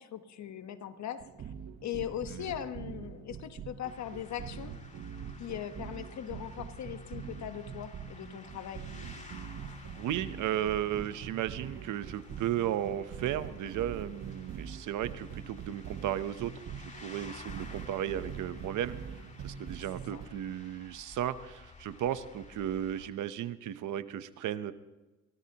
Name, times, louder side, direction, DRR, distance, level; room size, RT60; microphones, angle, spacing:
voice 1, 0.0-1.5 1.8-4.8 5.4-8.9 20.1-20.2, left 10 dB, 65° left, 9 dB, 1.2 m, -40 dB
sound 1, 1.2-20.3, right 7 dB, 60° right, 1.3 m, -44 dB
sound 2, 3.8-23.1, left 3 dB, 25° left, 2.8 m, -53 dB
voice 2, 10.0-19.0 19.4-24.7, right 11 dB, 80° right, 13 dB, 0.9 m, -35 dB
23.5 x 17.0 x 3.0 m, 1.2 s
cardioid pair, 90°, 30 cm